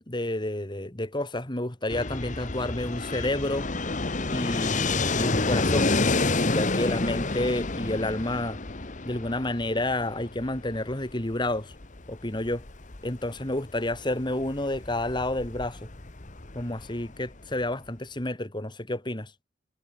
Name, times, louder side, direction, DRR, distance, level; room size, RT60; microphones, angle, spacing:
voice 1, 0.1-3.7 4.3-5.9 6.3-8.6 9.0-11.7 12.1-12.7 13.0-15.8 16.5-19.3, left 1 dB, 25° left, 2.0 m, -30 dB
Fixed-wing aircraft airplane, 1.9-17.6, left 3 dB, 40° left, 1.3 m, -30 dB
head